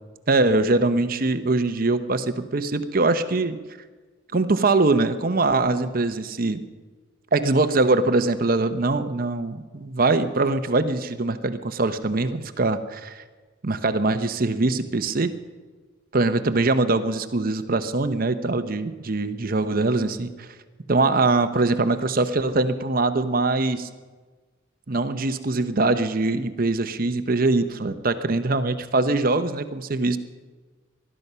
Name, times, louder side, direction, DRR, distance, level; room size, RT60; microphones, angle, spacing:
voice 1, 0.3-3.6 4.3-6.6 7.3-13.2 13.6-15.3 16.1-20.5 20.9-23.9 24.9-30.2, right 3 dB, 45° right, 10 dB, 0.8 m, -22 dB
20.5 x 12.5 x 5.6 m, 1.4 s
head